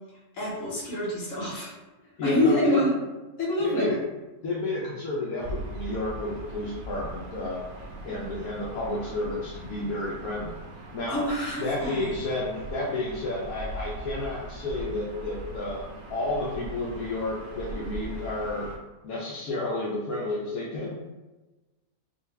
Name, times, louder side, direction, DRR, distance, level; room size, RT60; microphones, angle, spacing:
voice 1, 0.3-1.7 2.2-2.9 3.4-3.9 11.1-12.2, left 1 dB, 65° left, -5 dB, 1.5 m, -26 dB
voice 2, 2.2-2.9 3.6-4.0 4.4-7.6 8.0-10.6 10.9-11.2 11.6-18.7 19.0-20.9, left 2 dB, 85° left, -5 dB, 1.1 m, -31 dB
Gull seagull / Ocean, 5.4-18.8, right 1 dB, 75° right, 1.0 m, -40 dB
3.9 x 2.3 x 3.2 m, 1.1 s
omnidirectional pair, 1.5 m